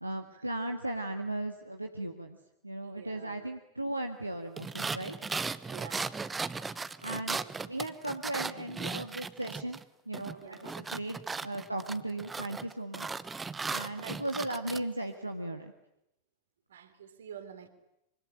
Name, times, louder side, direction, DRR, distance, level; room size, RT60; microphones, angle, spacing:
voice 1, 0.0-2.4 2.6-5.2 7.0-9.8 10.1-13.2 13.7-15.7, right 1 dB, 85° right, 4 dB, 1.7 m, -37 dB
voice 2, 2.8-3.4 5.7-6.2 6.5-6.7 7.3-7.5 10.3-10.7 14.0-14.2 16.7-17.7, right 8 dB, 65° right, 8 dB, 3.5 m, -48 dB
sound 1, 4.6-9.8 10.1-14.8, right 4 dB, 15° right, 1.0 m, -37 dB
25.5 x 25.0 x 8.9 m, 0.83 s
figure-of-eight pair, 90°, 0 cm